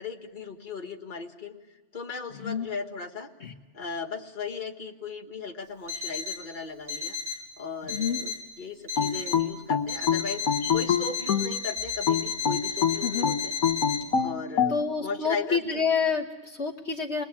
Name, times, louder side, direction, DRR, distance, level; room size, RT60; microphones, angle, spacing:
voice 1, 0.0-1.6 1.9-3.3 3.7-7.2 7.6-13.6 14.2-15.8, left 5 dB, 35° left, 3 dB, 1.9 m, -37 dB
Alarm, 5.9-6.5 6.9-7.5 7.9-8.5 8.9-9.5 9.9-14.0, left 6 dB, 55° right, 4.9 m, -33 dB
voice 2, 7.8-8.2 13.0-13.3 14.7-17.2, left 5 dB, 50° left, 1 dB, 1.5 m, -28 dB
sound 1, 9.0-11.5 12.1-14.8, left 7 dB, 75° left, 1.7 m, -25 dB
29.0 x 21.0 x 8.6 m, 1.2 s
omnidirectional pair, 1.5 m